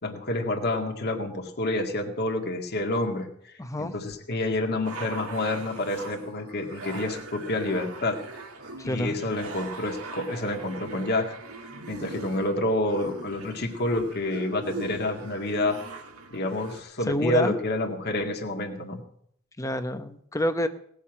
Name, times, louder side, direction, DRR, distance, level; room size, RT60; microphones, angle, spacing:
voice 1, 0.0-3.5 3.8-8.2 8.8-11.4 11.9-15.8 16.3-19.0, left 1 dB, 50° left, 3 dB, 2.0 m, -28 dB
voice 2, 3.6-4.0 8.8-9.2 17.1-17.6 19.6-20.7, left 1 dB, 15° left, 9 dB, 0.8 m, -27 dB
sound 1, 4.8-16.8, right 3 dB, 90° right, 2.5 m, -41 dB
18.0 x 7.3 x 8.8 m, 0.69 s
head